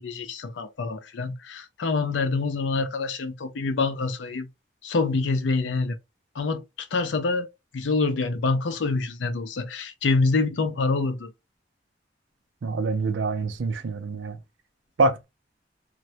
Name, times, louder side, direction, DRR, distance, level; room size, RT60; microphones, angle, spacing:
voice 1, 0.0-4.5 4.8-6.0 6.4-7.5 7.7-11.3, left 3 dB, 75° left, 0.5 m, -26 dB
voice 2, 12.6-14.4 15.0-15.2, right 3 dB, 80° right, 0.5 m, -25 dB
2.1 x 2.1 x 2.7 m
head